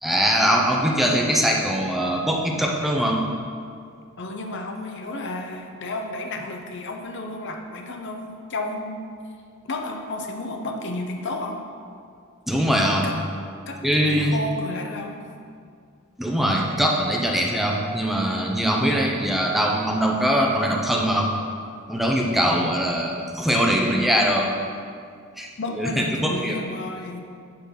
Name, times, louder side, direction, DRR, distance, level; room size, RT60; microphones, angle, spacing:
voice 1, 0.0-3.2 12.5-13.1 13.8-14.3 16.2-21.3 21.9-24.5 25.4-25.5 25.7-26.6, equal, ahead, -1 dB, 0.8 m, -22 dB
voice 2, 4.2-9.1 9.6-11.7 13.0-13.2 13.7-15.2 25.6-27.2, left 2 dB, 60° left, 3 dB, 0.8 m, -32 dB
10.5 x 4.1 x 5.7 m, 2.2 s
head